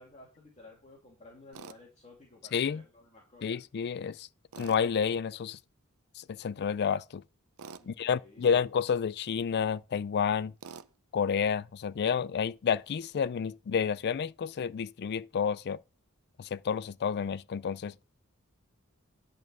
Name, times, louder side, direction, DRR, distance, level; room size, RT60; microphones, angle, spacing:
voice 1, 0.0-3.6 7.8-8.6, left 2 dB, 30° left, 2.4 m, -54 dB
Tools, 1.5-1.8 4.5-4.9 7.6-7.9 10.6-10.9, right 5 dB, 75° right, 0.6 m, -46 dB
voice 2, 2.5-2.8 3.4-4.3 4.6-5.6 6.2-7.2 7.9-10.5 11.1-15.8 16.4-17.9, left 7 dB, 50° left, 0.4 m, -30 dB
11.0 x 4.5 x 6.1 m
head